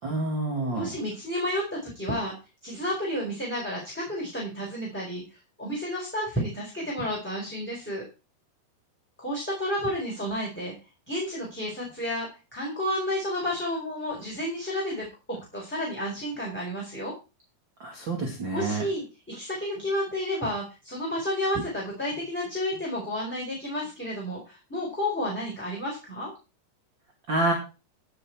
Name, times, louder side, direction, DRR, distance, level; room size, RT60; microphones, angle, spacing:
voice 1, 0.0-0.9 17.8-18.8 27.3-27.5, right 2 dB, 35° right, 1 dB, 2.5 m, -28 dB
voice 2, 0.7-2.3 2.6-5.2 5.6-8.0 9.2-10.7 11.1-17.1 18.5-26.3, equal, 5° left, -4 dB, 4.0 m, -31 dB
16.0 x 7.2 x 4.6 m, 0.31 s
omnidirectional pair, 4.9 m